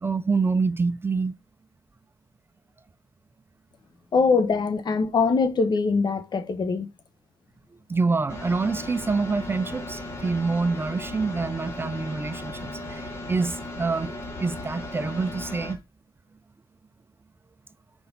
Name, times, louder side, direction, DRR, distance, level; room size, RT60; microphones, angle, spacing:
voice 1, 0.0-1.3 7.9-14.1 14.4-15.8, right 4 dB, 25° right, 0.4 m, -26 dB
voice 2, 4.1-6.9, left 4 dB, 50° left, 1.0 m, -22 dB
sound 1, 8.3-15.7, left 1 dB, 25° left, 2.3 m, -36 dB
6.1 x 5.2 x 3.9 m
cardioid pair, 90°, 10 cm